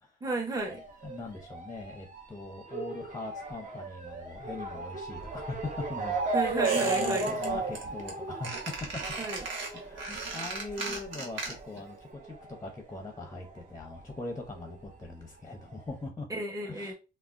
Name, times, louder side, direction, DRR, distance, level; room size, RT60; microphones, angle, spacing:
voice 1, 0.2-0.8 6.3-7.3 9.2-9.4 16.3-16.9, right 2 dB, 20° right, 0.9 m, -33 dB
Motor vehicle (road) / Siren, 0.6-13.6 13.9-15.0 15.7-15.8 16.0-16.1, right 3 dB, 40° right, 0.8 m, -36 dB
voice 2, 1.0-6.4 6.8-8.7 9.7-16.3 16.7-16.9, left 2 dB, 15° left, 0.6 m, -41 dB
Squeak, 6.6-7.5 7.7-8.1 8.4-11.8 12.1-12.2, right 3 dB, 75° right, 1.0 m, -37 dB
3.5 x 2.1 x 2.5 m
cardioid pair, 90°, 20 cm